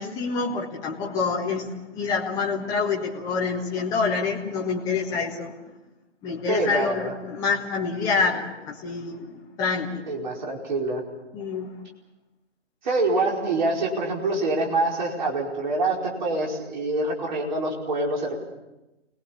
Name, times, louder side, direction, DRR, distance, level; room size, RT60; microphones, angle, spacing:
voice 1, 0.0-5.5 6.2-10.1 11.3-11.8, left 4 dB, 10° left, -1 dB, 1.6 m, -27 dB
voice 2, 6.5-7.1 10.1-11.0 12.8-18.4, right 2 dB, 40° right, -1 dB, 4.9 m, -25 dB
29.0 x 20.0 x 7.1 m, 0.99 s
figure-of-eight pair, 155°, 37 cm